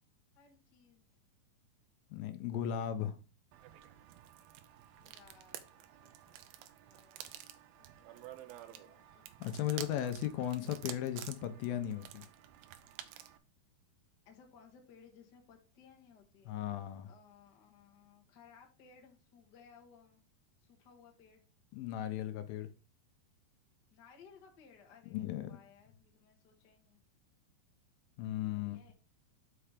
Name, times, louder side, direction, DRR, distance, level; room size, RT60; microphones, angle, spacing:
voice 1, 0.3-1.0 4.9-6.6 6.9-7.3 7.8-9.3 14.2-16.6 17.0-20.2 20.6-21.4 23.9-27.0 28.5-28.9, left 6 dB, 55° left, 1.2 m, -61 dB
voice 2, 2.1-3.2 9.4-12.2 16.5-17.1 21.7-22.7 25.1-25.6 28.2-28.8, left 11 dB, 80° left, 2.4 m, -36 dB
sound 1, 3.5-13.4, right 12 dB, 85° right, 2.5 m, -51 dB
5.8 x 5.6 x 4.9 m
omnidirectional pair, 4.3 m